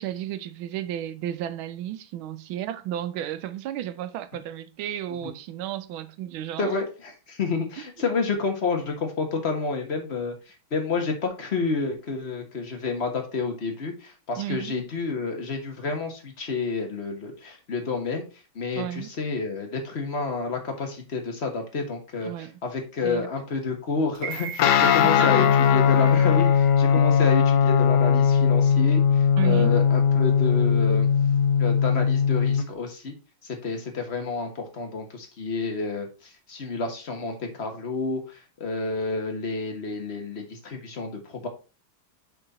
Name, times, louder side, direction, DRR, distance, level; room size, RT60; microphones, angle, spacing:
voice 1, 0.0-6.8 14.4-14.8 18.8-19.1 22.2-22.6 23.0-23.3 25.0-25.6 26.9-27.1 29.4-29.7, right 12 dB, 85° right, 1.4 m, -33 dB
voice 2, 6.6-10.3 10.7-18.2 18.5-22.3 22.6-31.1 31.6-33.1 33.6-36.1 36.5-38.2 38.6-41.5, left 4 dB, 35° left, 1.5 m, -29 dB
sound 1, 24.1-28.3 28.7-28.8, right 6 dB, 50° right, 0.7 m, -41 dB
Guitar, 24.6-32.6, left 7 dB, 70° left, 1.1 m, -19 dB
6.7 x 4.4 x 4.2 m
omnidirectional pair, 2.2 m